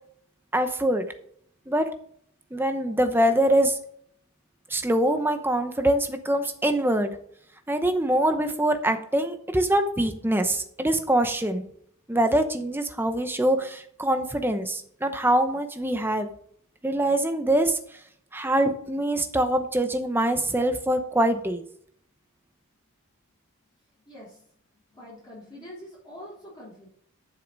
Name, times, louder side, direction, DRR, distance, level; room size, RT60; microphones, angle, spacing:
voice 1, 0.5-1.1 1.7-1.9 2.5-3.8 4.7-7.2 7.7-11.6 12.1-16.3 16.8-18.0 18.3-21.6, right 1 dB, 10° right, 7 dB, 0.8 m, -24 dB
voice 2, 24.0-24.5 24.9-26.9, equal, 20° left, -7 dB, 3.5 m, -44 dB
11.5 x 6.6 x 4.0 m, 0.64 s
head